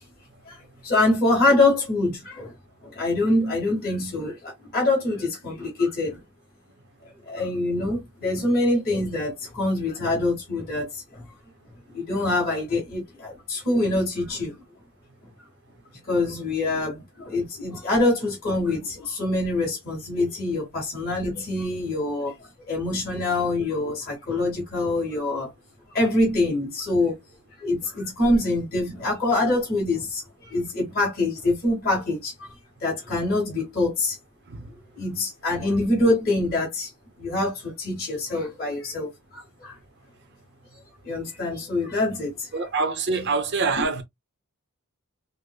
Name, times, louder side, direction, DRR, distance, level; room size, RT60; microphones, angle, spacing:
voice 1, 0.8-2.5 2.8-6.2 7.3-11.2 11.9-14.6 16.1-22.3 22.7-25.5 25.9-27.2 27.6-32.5 32.8-34.2 35.0-36.9 37.2-39.7 41.0-42.5 43.8-43.9, left 2 dB, 45° left, 2.0 m, -25 dB
voice 2, 42.5-44.0, right 4 dB, 50° right, 0.7 m, -25 dB
4.9 x 2.0 x 2.2 m
head